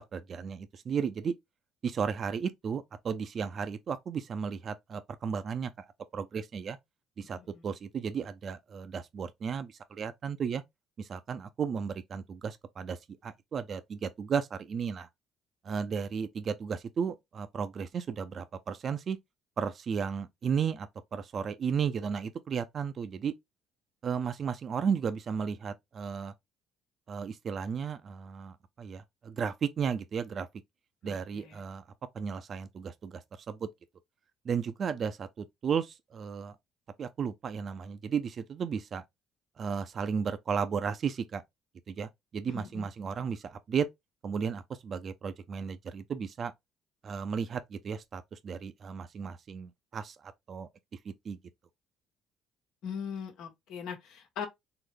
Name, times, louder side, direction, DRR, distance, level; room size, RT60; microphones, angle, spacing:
voice 1, 0.0-1.4 1.8-5.7 6.1-6.8 7.2-10.6 11.0-13.0 13.2-15.1 15.6-19.2 19.6-23.3 24.0-26.3 27.1-30.5 31.0-31.8 32.1-33.2 33.5-33.7 34.4-36.6 37.0-39.0 39.6-41.4 41.9-43.9 44.2-46.5 47.0-50.7 51.0-51.4, right 6 dB, 50° right, 0.5 m, -34 dB
voice 2, 7.3-7.6 31.0-31.6 42.5-42.9 52.8-54.5, left 7 dB, 75° left, 1.1 m, -40 dB
3.8 x 2.0 x 3.3 m
supercardioid pair, 80°, 0 cm